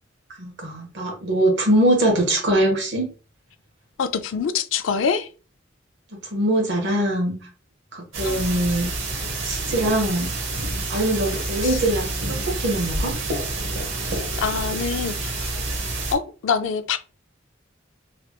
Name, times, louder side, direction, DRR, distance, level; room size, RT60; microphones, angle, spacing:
voice 1, 0.4-3.1 6.1-7.4 7.9-8.9 9.4-10.3 10.9-13.1, right 1 dB, 65° right, 1.2 m, -22 dB
voice 2, 4.0-5.3 8.2-8.4 11.6-11.8 14.4-15.5 16.1-17.0, left 6 dB, 80° left, 0.4 m, -25 dB
sound 1, 8.1-16.2, right 2 dB, 80° right, 0.8 m, -28 dB
3.2 x 2.9 x 2.3 m
head